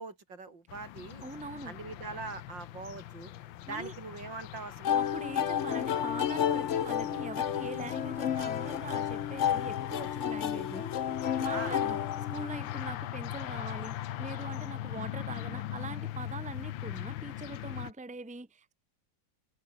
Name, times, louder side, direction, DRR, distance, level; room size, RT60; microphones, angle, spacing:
voice 1, 0.0-1.3 1.7-3.3 3.7-4.9 11.5-11.8, right 4 dB, 70° right, 4.4 m, -42 dB
sound 1, 0.7-17.9, left 13 dB, 85° left, 1.6 m, -40 dB
voice 2, 1.2-1.7 3.7-3.9 4.9-11.1 11.4-12.0 12.3-18.7, right 3 dB, 5° right, 1.4 m, -42 dB
sound 2, 4.8-12.8, left 9 dB, 50° left, 0.9 m, -31 dB
omnidirectional pair, 2.0 m